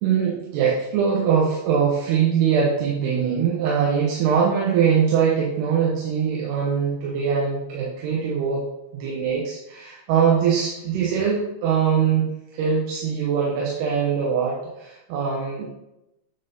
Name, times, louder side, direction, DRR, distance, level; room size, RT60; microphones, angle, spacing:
voice 1, 0.0-8.6 8.9-15.7, right 7 dB, 90° right, -4 dB, 3.0 m, -22 dB
9.4 x 4.1 x 3.4 m, 0.92 s
omnidirectional pair, 4.5 m